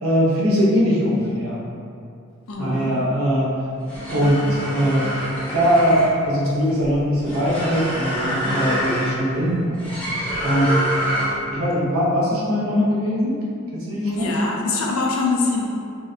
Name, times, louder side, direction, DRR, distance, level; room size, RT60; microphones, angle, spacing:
voice 1, 0.0-1.6 2.6-3.5 4.1-5.1 5.5-9.8 10.4-10.9 11.5-13.4 13.7-14.3, equal, 85° right, -6 dB, 0.7 m, -21 dB
voice 2, 2.5-3.0 14.0-15.7, left 3 dB, 75° left, -1 dB, 0.4 m, -23 dB
sound 1, 3.7-11.5, right 1 dB, 5° left, 0.4 m, -26 dB
2.7 x 2.0 x 2.3 m, 2.4 s
head